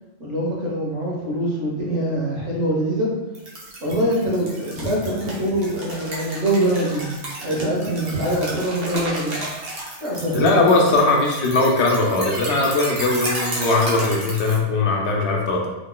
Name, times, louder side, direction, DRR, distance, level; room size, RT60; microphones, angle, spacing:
voice 1, 0.2-3.1 3.8-7.1 7.4-9.4 10.0-10.7, right 1 dB, 75° right, -4 dB, 1.4 m, -23 dB
sound 1, 3.3-14.6, right 1 dB, 55° right, 1.1 m, -32 dB
voice 2, 10.3-15.7, left 3 dB, 70° left, 0 dB, 0.8 m, -19 dB
3.7 x 3.0 x 2.2 m, 1.1 s
omnidirectional pair, 1.2 m